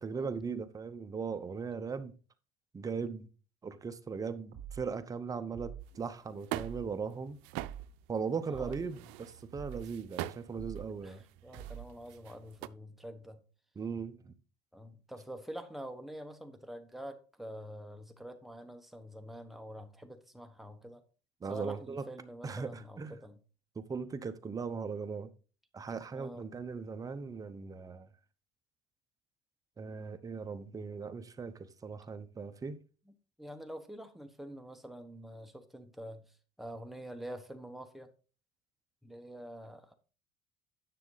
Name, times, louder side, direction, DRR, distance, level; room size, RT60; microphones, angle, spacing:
voice 1, 0.0-2.1 2.7-3.3 3.6-7.4 8.1-11.2 13.8-14.3 21.4-22.0 22.4-23.2 23.8-25.3 25.7-28.1 29.8-32.8, right 5 dB, 20° right, 0.8 m, -38 dB
sound 1, 4.5-4.9 5.5-5.9 6.5-6.9 7.5-7.9 8.5-8.9 9.5-9.9 10.5-10.9 11.5-11.9, right 9 dB, 55° right, 2.2 m, -45 dB
sound 2, 5.8-12.7, right 16 dB, 90° right, 0.5 m, -45 dB
voice 2, 8.5-9.0 11.0-13.4 14.7-21.0 21.5-23.4 26.1-26.5 33.4-38.1 39.0-39.9, equal, ahead, 1.1 m, -46 dB
9.9 x 6.2 x 3.9 m
cardioid pair, 135°, 18 cm